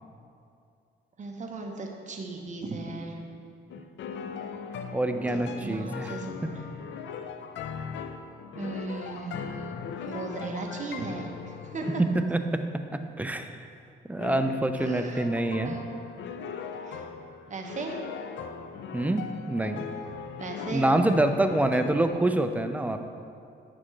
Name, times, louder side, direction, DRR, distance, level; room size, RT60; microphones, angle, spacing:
voice 1, 1.2-3.2 5.3-6.4 8.5-9.7 10.1-12.0 14.8-15.3 15.6-16.0 16.8-17.1 17.5-18.0 20.4-20.9, right 3 dB, 40° right, 2 dB, 1.0 m, -37 dB
sound 1, 3.7-12.1 14.2-22.1, left 6 dB, 70° left, 0.5 m, -39 dB
voice 2, 4.9-6.5 12.0-12.6 13.2-13.5 14.1-15.8 18.9-19.8 20.7-23.0, right 1 dB, 5° right, 7 dB, 0.4 m, -26 dB
8.7 x 6.1 x 3.2 m, 2.5 s
cardioid pair, 90°, 20 cm